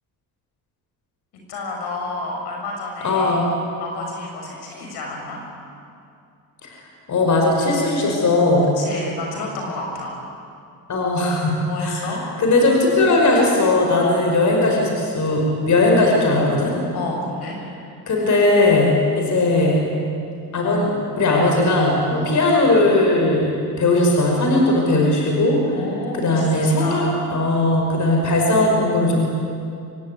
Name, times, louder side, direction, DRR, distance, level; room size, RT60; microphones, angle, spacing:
voice 1, 1.5-3.4 3.8-5.4 8.8-10.2 11.7-12.2 14.6-14.8 16.9-17.6 22.1-22.3 25.7-27.1, left 2 dB, 80° left, 0 dB, 6.9 m, -30 dB
voice 2, 3.0-3.5 6.6-6.8 7.1-8.7 10.9-16.7 18.1-19.8 20.5-20.9 21.2-25.8 26.1-29.2, left 2 dB, 50° left, 0 dB, 5.6 m, -18 dB
25.5 x 17.5 x 9.9 m, 2.4 s
cardioid pair, 90°, 38 cm